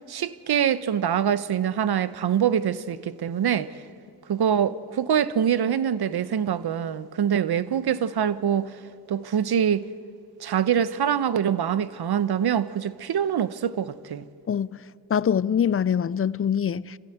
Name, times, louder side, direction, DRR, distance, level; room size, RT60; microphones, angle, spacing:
voice 1, 0.1-3.7 4.3-8.7 9.1-9.9 10.4-14.2, right 8 dB, 60° right, 0.9 m, -24 dB
voice 2, 15.1-17.0, left 8 dB, 30° left, 0.5 m, -24 dB
26.5 x 15.5 x 8.0 m
cardioid pair, 55°, 43 cm